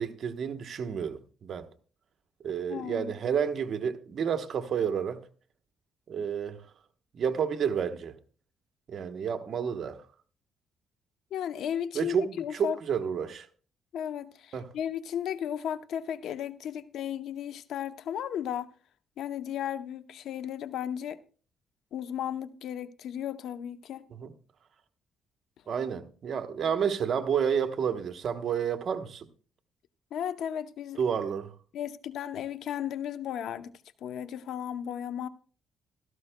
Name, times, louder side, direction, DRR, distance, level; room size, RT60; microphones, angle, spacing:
voice 1, 0.0-1.7 2.4-5.2 6.1-6.7 7.1-8.2 8.9-10.0 11.9-13.5 14.5-14.7 24.1-24.3 25.7-29.3 31.0-31.5, right 7 dB, 60° right, 1.0 m, -30 dB
voice 2, 2.7-3.1 11.3-12.8 13.9-18.7 19.2-21.2 21.9-24.1 30.1-31.0 31.7-33.7 34.0-35.3, left 9 dB, 75° left, 0.7 m, -35 dB
16.0 x 13.5 x 2.2 m
cardioid pair, 90°, 0 cm